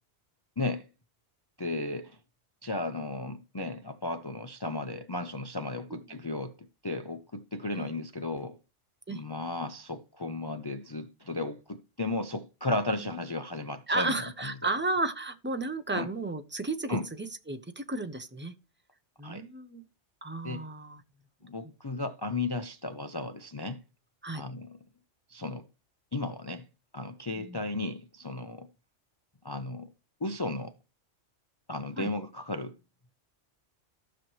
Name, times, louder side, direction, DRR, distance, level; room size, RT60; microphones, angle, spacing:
voice 1, 0.6-0.9 1.6-2.2 2.6-8.6 9.1-14.5 15.9-16.1 16.9-17.1 19.2-19.5 20.4-20.7 21.4-23.8 24.3-24.8 25.3-25.7 26.1-26.7 26.9-28.7 29.4-29.9 30.2-30.7 31.7-32.7, left 2 dB, 35° left, 0.4 m, -34 dB
voice 2, 13.9-18.5 19.2-19.9 20.2-21.0 24.2-24.4 27.4-27.6 32.0-32.1, right 2 dB, 10° right, 0.6 m, -33 dB
15.0 x 5.9 x 3.1 m
omnidirectional pair, 1.2 m